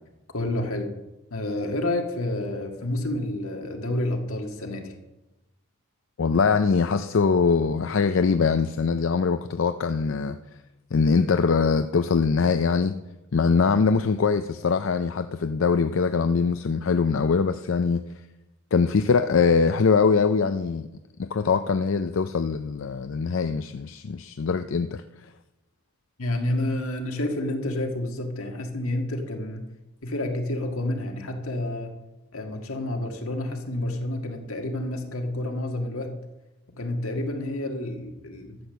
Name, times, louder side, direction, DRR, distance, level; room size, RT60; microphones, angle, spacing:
voice 1, 0.3-0.9 1.3-5.0 26.2-29.7 30.0-31.9 32.3-36.1 36.7-38.6, left 1 dB, 80° left, 3 dB, 1.8 m, -29 dB
voice 2, 6.2-10.4 10.9-13.0 13.3-18.0 18.7-20.9 21.2-25.0, left 5 dB, 65° left, 10 dB, 0.5 m, -22 dB
12.5 x 8.0 x 6.8 m, 1.0 s
head